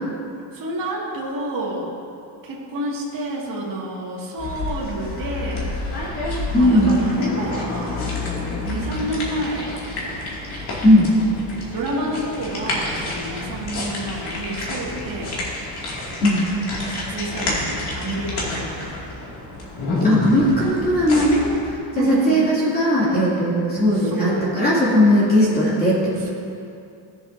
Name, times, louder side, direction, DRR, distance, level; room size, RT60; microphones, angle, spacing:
voice 1, 0.5-1.9 2.4-5.8 6.6-8.0 8.6-9.8 11.7-15.4 16.9-18.9 22.0-22.4 23.9-24.5, right 1 dB, 40° right, -4 dB, 2.2 m, -29 dB
sound 1, 4.4-21.7, left 2 dB, 50° left, 2.4 m, -29 dB
voice 2, 6.5-6.9 10.8-11.1 16.2-16.5 20.0-26.1, equal, 20° left, -8 dB, 2.6 m, -18 dB
17.5 x 7.4 x 2.7 m, 2.6 s
cardioid pair, 145°, 50 cm